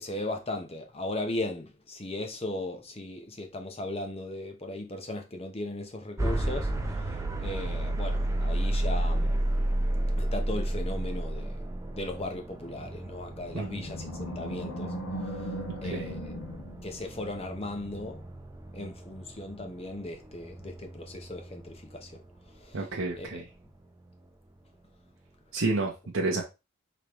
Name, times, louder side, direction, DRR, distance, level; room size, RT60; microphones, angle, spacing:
voice 1, 0.0-7.1 7.4-9.4 10.2-11.6 11.9-14.9 15.8-16.3 16.8-18.2 18.7-22.2 22.6-22.9 23.2-23.4, left 1 dB, 25° left, 0.8 m, -37 dB
sound 1, 6.2-22.1, right 1 dB, 15° right, 0.5 m, -32 dB
Animal, 13.0-17.5, equal, 90° left, 1.6 m, -38 dB
voice 2, 15.8-16.1 22.7-23.4 25.5-26.4, right 3 dB, 60° right, 0.7 m, -30 dB
5.1 x 3.1 x 3.0 m
head